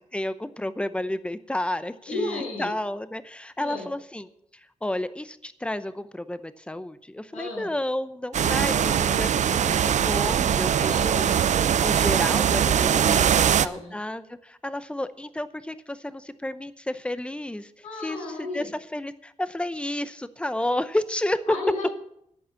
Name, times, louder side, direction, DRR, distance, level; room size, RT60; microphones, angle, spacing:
voice 1, 0.1-4.3 4.8-11.3 11.8-17.7 18.0-21.4, left 1 dB, 10° left, 14 dB, 0.7 m, -31 dB
voice 2, 2.1-2.7 3.6-3.9 7.3-7.7 8.6-9.2 10.8-11.4 12.7-13.9 17.8-18.7 21.5-21.9, left 2 dB, 80° left, -8 dB, 7.0 m, -34 dB
sound 1, 8.3-13.7, right 9 dB, 80° right, 0.4 m, -21 dB
11.5 x 8.5 x 7.6 m, 0.75 s
wide cardioid pair, 110°, 12 cm